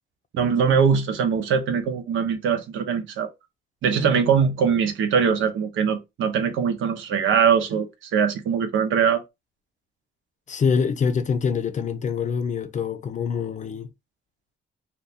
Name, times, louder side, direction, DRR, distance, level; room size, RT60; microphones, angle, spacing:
voice 1, 0.3-3.3 3.8-7.9 8.1-9.2, right 6 dB, 80° right, 0.8 m, -22 dB
voice 2, 10.5-13.9, left 6 dB, 40° left, 0.5 m, -25 dB
2.6 x 2.3 x 4.0 m
cardioid pair, 90°, 20 cm